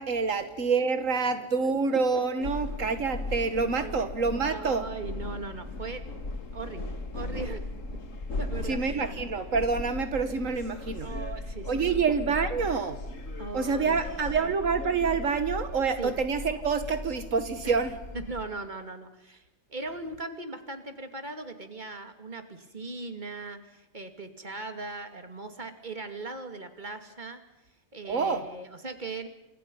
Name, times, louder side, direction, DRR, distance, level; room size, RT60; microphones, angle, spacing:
voice 1, 0.0-4.8 8.7-11.1 11.7-13.0 13.5-17.9 28.0-28.5, right 5 dB, 80° right, 9 dB, 1.8 m, -27 dB
voice 2, 1.4-2.0 3.8-4.0 4.5-6.0 6.5-7.6 8.4-9.0 11.0-12.0 13.4-14.0 16.0-16.1 17.6-17.8 18.1-19.4 19.7-27.4 27.9-29.3, right 3 dB, 35° right, 7 dB, 2.7 m, -39 dB
sound 1, 2.4-18.4, left 2 dB, 75° left, 2.3 m, -38 dB
29.5 x 27.5 x 5.6 m, 0.93 s
omnidirectional pair, 1.3 m